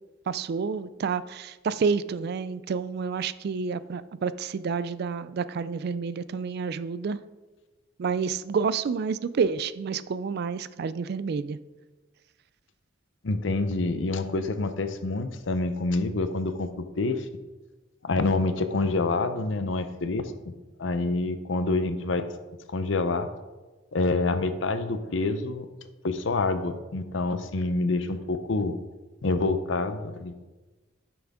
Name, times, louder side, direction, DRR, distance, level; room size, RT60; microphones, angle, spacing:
voice 1, 0.3-7.2 8.0-11.6, right 5 dB, 55° right, 15 dB, 0.3 m, -29 dB
voice 2, 13.2-17.2 18.0-20.3 20.8-22.2 22.7-23.3 23.9-25.7 26.0-28.8 29.2-30.3, left 3 dB, 70° left, 10 dB, 0.7 m, -27 dB
11.5 x 6.1 x 3.6 m, 1.2 s
head